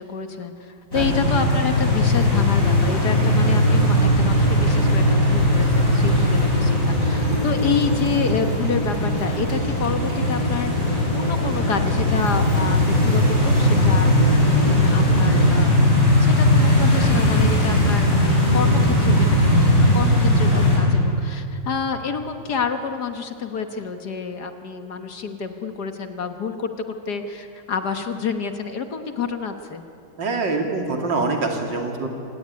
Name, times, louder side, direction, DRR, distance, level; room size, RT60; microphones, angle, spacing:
voice 1, 0.0-14.1 14.6-15.8 16.2-29.8, left 5 dB, 60° left, 7 dB, 1.8 m, -28 dB
sound 1, 0.9-20.8, left 1 dB, 45° left, 7.8 m, -19 dB
sound 2, 3.1-15.6, right 2 dB, 90° right, 6.5 m, -32 dB
voice 2, 30.2-32.1, right 3 dB, 70° right, 3 dB, 3.3 m, -25 dB
26.5 x 18.5 x 9.6 m, 2.7 s
omnidirectional pair, 2.0 m